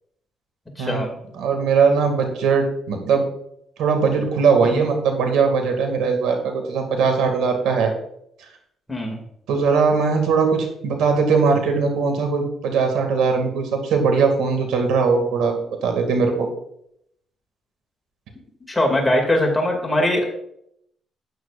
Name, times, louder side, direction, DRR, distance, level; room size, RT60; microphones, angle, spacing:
voice 1, 0.8-1.2 4.6-4.8 8.9-9.2 18.7-20.2, left 1 dB, 10° left, 0 dB, 2.5 m, -21 dB
voice 2, 1.3-3.2 3.8-7.9 9.5-16.5, right 5 dB, 90° right, 4 dB, 2.3 m, -20 dB
12.5 x 9.2 x 2.5 m, 0.72 s
cardioid pair, 90°, 0 cm